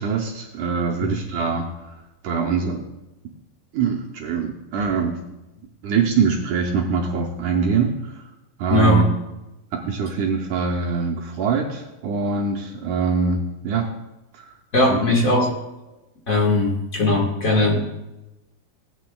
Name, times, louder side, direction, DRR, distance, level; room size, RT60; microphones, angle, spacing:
voice 1, 0.0-2.0 2.2-2.9 3.7-5.2 5.8-8.2 8.6-9.1 9.7-13.9 14.3-14.5 14.9-15.0, right 5 dB, 75° right, 0 dB, 1.9 m, -23 dB
voice 2, 8.7-9.0 14.7-15.5 16.3-17.8, left 2 dB, 40° left, -2 dB, 1.1 m, -18 dB
17.0 x 8.9 x 2.3 m, 0.98 s
omnidirectional pair, 4.1 m